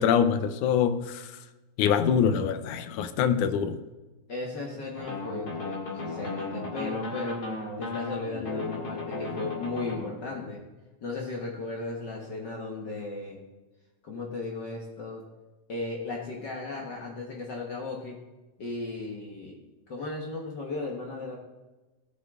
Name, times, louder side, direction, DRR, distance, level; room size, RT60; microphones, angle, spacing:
voice 1, 0.0-1.3 1.8-3.8, left 7 dB, 85° left, 11 dB, 2.1 m, -24 dB
voice 2, 4.3-7.5 7.8-10.6 11.0-13.4 14.0-15.2 15.7-18.2 18.6-19.6 19.9-21.4, left 3 dB, 50° left, -1 dB, 1.3 m, -35 dB
sound 1, 4.9-9.9, left 2 dB, 35° left, 2.5 m, -35 dB
17.0 x 7.6 x 3.6 m, 1.2 s
omnidirectional pair, 3.5 m